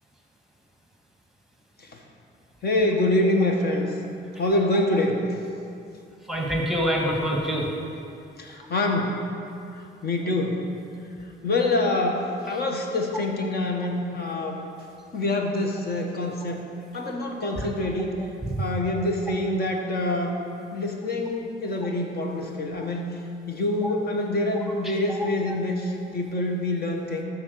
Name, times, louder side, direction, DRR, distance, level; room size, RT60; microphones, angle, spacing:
voice 1, 2.6-3.9 4.4-5.2 8.7-9.1 10.0-10.6 11.4-14.6 15.1-16.6 16.9-18.1 18.6-20.4 20.7-23.2 23.5-27.2, left 2 dB, 50° left, 2 dB, 1.5 m, -25 dB
voice 2, 6.3-7.7 17.6-17.7 18.5-18.6 23.8-23.9 25.1-25.6, equal, ahead, -1 dB, 1.6 m, -26 dB
13.5 x 4.6 x 6.5 m, 2.6 s
cardioid pair, 90°, 20 cm